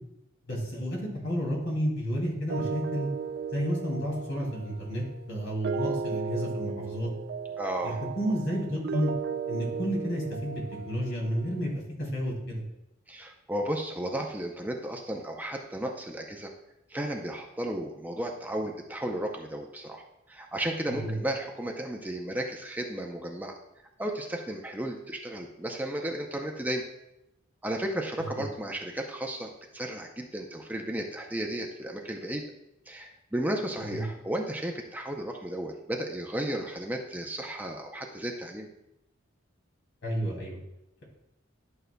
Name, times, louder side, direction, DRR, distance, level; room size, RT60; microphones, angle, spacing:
voice 1, 0.5-3.1 3.5-7.1 7.8-9.1 9.5-11.7 12.0-12.6 21.0-21.1 33.9-34.0 40.0-40.6, equal, 65° left, -2 dB, 2.6 m, -31 dB
sound 1, 2.5-11.7, right 5 dB, 55° right, 0.4 m, -36 dB
voice 2, 7.6-8.0 13.1-16.5 16.9-23.6 24.0-26.8 27.6-32.4 32.9-38.7, right 1 dB, 10° right, 2 dB, 0.6 m, -34 dB
11.5 x 6.5 x 2.2 m, 0.87 s
head